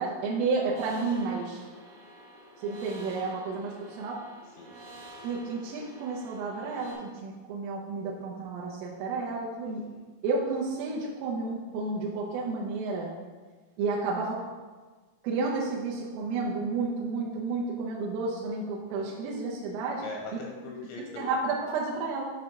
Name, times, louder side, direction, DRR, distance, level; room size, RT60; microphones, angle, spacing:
voice 1, 0.0-1.6 2.6-4.2 5.2-9.8 10.2-13.1 13.8-14.4 15.2-20.0 21.2-22.2, right 3 dB, 80° right, -4 dB, 3.2 m, -31 dB
sound 1, 0.7-6.9, right 1 dB, 65° right, 1.9 m, -49 dB
voice 2, 4.4-4.8 9.7-10.1 19.0-19.4 20.0-21.3, left 3 dB, 85° left, 0 dB, 2.7 m, -42 dB
8.7 x 3.3 x 5.8 m, 1.4 s
omnidirectional pair, 5.8 m